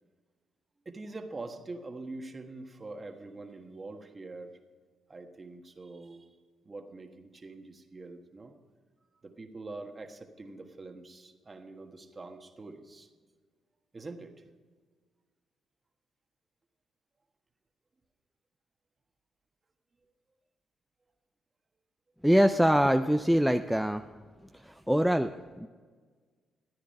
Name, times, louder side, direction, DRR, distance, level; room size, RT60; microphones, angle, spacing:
voice 1, 0.8-4.5 5.1-6.4 6.6-8.5 9.2-13.1 13.9-14.4, right 3 dB, 25° right, 5 dB, 1.5 m, -44 dB
voice 2, 22.2-24.0 24.5-25.7, equal, ahead, 7 dB, 0.4 m, -24 dB
14.0 x 9.7 x 5.5 m, 1.5 s
cardioid pair, 90°, 0 cm